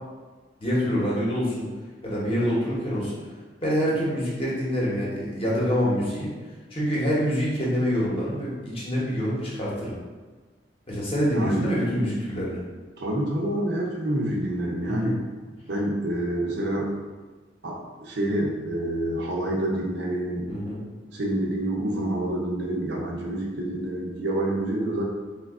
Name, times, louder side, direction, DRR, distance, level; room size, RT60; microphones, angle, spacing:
voice 1, 0.6-1.7 2.0-3.1 3.6-6.4 6.7-9.9 10.9-12.6 14.8-15.1 20.5-20.8, equal, 30° left, -6 dB, 0.9 m, -26 dB
voice 2, 11.3-11.7 13.0-15.2 15.7-16.9 17.6-20.5 21.1-25.0, right 1 dB, 65° right, -2 dB, 0.6 m, -27 dB
3.1 x 2.3 x 3.5 m, 1.3 s
head